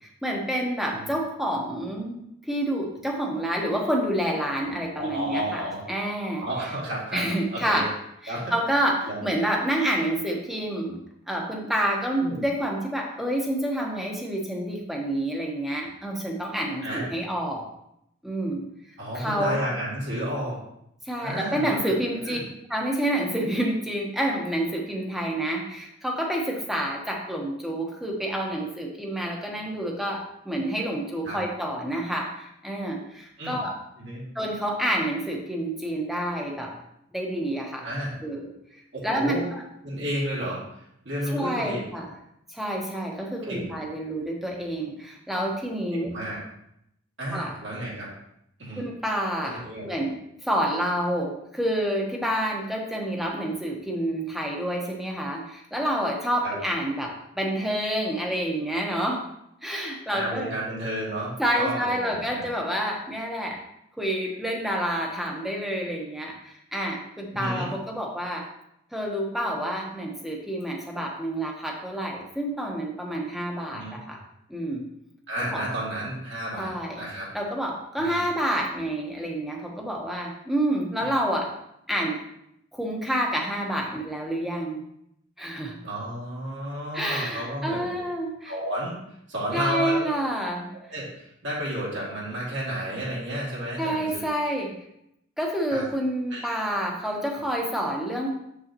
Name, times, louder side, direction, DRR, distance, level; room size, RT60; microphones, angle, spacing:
voice 1, 0.2-6.4 7.1-7.9 8.2-11.0 11.3-17.6 18.2-18.6 19.1-19.6 21.1-22.4 22.7-33.7 34.3-36.7 37.1-37.9 38.2-38.5 39.0-39.6 41.3-42.1 42.5-46.1 47.3-47.5 48.8-59.2 59.6-60.5 61.4-63.6 64.0-68.4 68.9-74.2 74.5-74.9 75.5-75.6 76.6-77.1 77.3-81.5 81.9-82.2 82.7-84.8 85.4-85.8 86.9-88.5 89.5-90.7 93.8-94.7 95.4-98.3, right 1 dB, ahead, -1 dB, 1.1 m, -28 dB
voice 2, 4.9-5.8 6.4-7.3 7.5-7.9 8.3-8.5 9.1-9.2 12.2-12.4 16.8-17.1 19.0-20.6 21.2-22.4 31.2-31.4 33.4-33.6 34.0-34.3 37.8-38.1 38.9-39.5 39.8-41.8 43.4-43.7 45.9-46.4 47.2-48.1 48.6-48.8 49.4-49.9 56.4-56.5 60.1-62.4 67.3-67.7 73.7-74.0 75.3-77.3 78.0-78.2 81.0-81.1 85.8-88.0 88.5-89.0 89.3-90.1 90.9-94.2 95.7-95.9 96.3-96.8, right 1 dB, 65° right, -6 dB, 2.5 m, -32 dB
7.2 x 6.6 x 3.0 m, 0.78 s
head